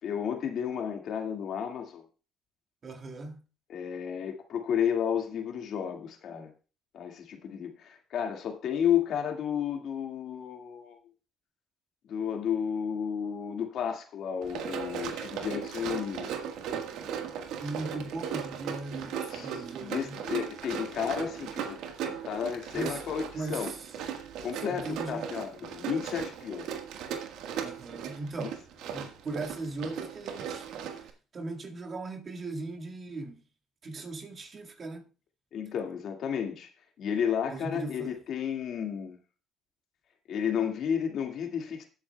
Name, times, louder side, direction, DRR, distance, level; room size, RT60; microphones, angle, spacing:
voice 1, 0.0-2.0 3.7-6.5 6.9-11.0 12.1-16.5 19.3-21.8 22.0-23.7 24.4-26.7 28.4-28.5 35.5-36.7 37.0-39.2 40.3-41.9, left 8 dB, 65° left, 2.0 m, -32 dB
voice 2, 2.8-3.4 17.6-20.2 22.7-23.0 23.3-23.8 24.7-25.3 27.6-28.6 28.9-30.7 30.9-31.1 31.3-33.4 33.8-35.0 37.5-38.1, right 3 dB, 40° right, 1.9 m, -38 dB
Run, 14.4-31.1, right 8 dB, 75° right, 1.5 m, -37 dB
18.5 x 8.6 x 2.3 m
supercardioid pair, 75°, 0 cm